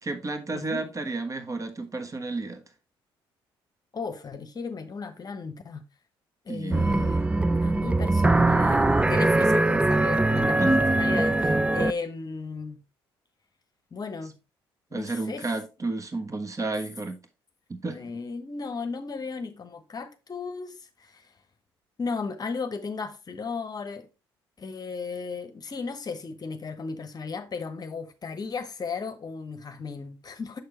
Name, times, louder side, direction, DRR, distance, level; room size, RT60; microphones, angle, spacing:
voice 1, 0.0-2.6 6.5-6.8 10.6-10.7 14.9-17.2 17.7-18.1, right 3 dB, 25° right, 1.2 m, -32 dB
voice 2, 0.5-0.8 3.9-5.8 6.4-7.3 7.6-12.8 13.9-14.3 14.9-15.5 17.9-21.3 22.0-24.1 24.6-30.6, left 4 dB, 30° left, 1.0 m, -35 dB
sound 1, 6.7-11.9, right 2 dB, 10° right, 0.4 m, -22 dB
6.7 x 6.5 x 3.1 m
figure-of-eight pair, 45°, 12 cm